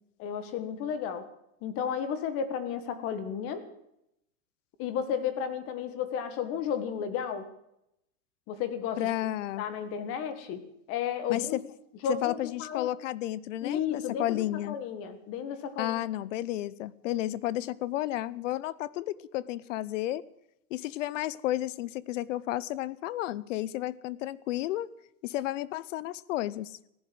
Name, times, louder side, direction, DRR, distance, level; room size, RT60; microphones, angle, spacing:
voice 1, 0.2-1.3 1.6-3.6 4.8-7.4 8.5-9.1 9.6-10.6 10.9-11.6 12.0-12.9 13.6-15.9, left 7 dB, 30° left, 12 dB, 1.5 m, -33 dB
voice 2, 9.0-9.6 11.3-11.6 12.1-14.8 15.8-20.2 20.7-24.9 25.2-26.8, left 14 dB, 55° left, 22 dB, 0.7 m, -32 dB
16.0 x 11.0 x 7.7 m, 0.80 s
supercardioid pair, 165°, 44 cm